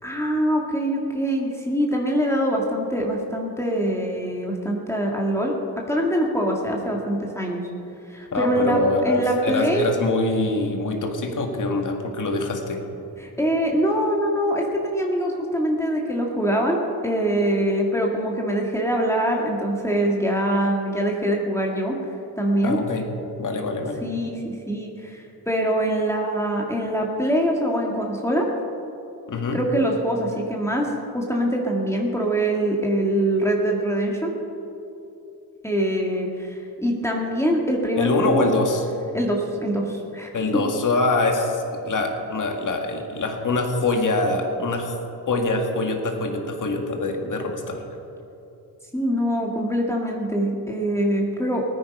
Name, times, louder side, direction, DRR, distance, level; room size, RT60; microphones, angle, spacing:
voice 1, 0.0-5.5 5.9-7.6 8.1-9.9 13.2-22.0 22.4-22.8 24.0-28.5 29.5-30.9 31.1-34.3 35.6-38.5 39.1-40.6 48.9-51.6, right 1 dB, 5° left, -2 dB, 1.9 m, -24 dB
voice 2, 8.3-12.8 22.6-23.1 23.4-24.0 29.3-29.6 38.0-38.8 40.3-44.9 45.3-47.8, left 2 dB, 50° left, 4 dB, 1.8 m, -24 dB
19.5 x 9.5 x 5.4 m, 2.8 s
cardioid pair, 90°, 40 cm